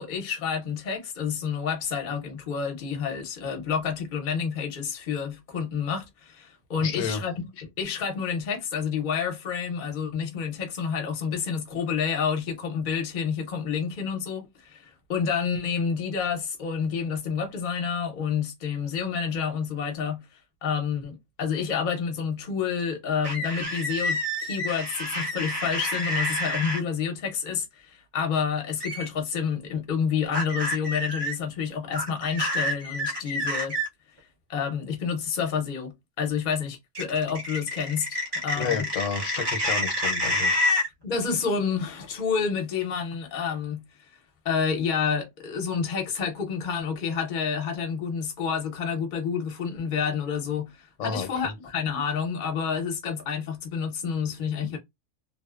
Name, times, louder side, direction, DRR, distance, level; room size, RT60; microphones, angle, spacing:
voice 1, 0.0-20.2 20.6-33.8 34.5-38.9 41.0-44.2 44.4-54.8, left 6 dB, 45° left, 0.7 m, -29 dB
voice 2, 6.8-7.2 38.6-40.8 51.0-51.3, left 6 dB, 80° left, 1.0 m, -31 dB
sound 1, 23.2-26.8 28.8-29.1 30.3-31.3 31.9-33.9 36.9-40.9, left 1 dB, 30° right, 0.5 m, -28 dB
2.7 x 2.0 x 2.3 m
omnidirectional pair, 1.3 m